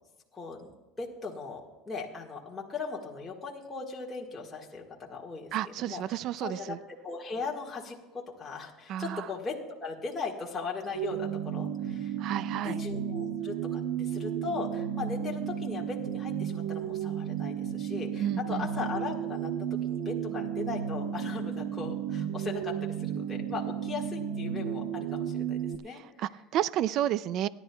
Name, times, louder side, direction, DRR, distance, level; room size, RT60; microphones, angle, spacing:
voice 1, 0.3-0.7 1.0-6.8 7.0-12.2 12.6-26.0, left 4 dB, 15° left, -3 dB, 1.5 m, -38 dB
voice 2, 5.5-6.8 8.9-9.3 12.2-12.8 18.2-18.7 26.2-27.5, right 11 dB, 45° right, 18 dB, 0.3 m, -31 dB
sound 1, 10.9-25.7, right 8 dB, 70° right, 0.7 m, -33 dB
30.0 x 11.0 x 2.3 m, 1.1 s
cardioid pair, 150°, 0 cm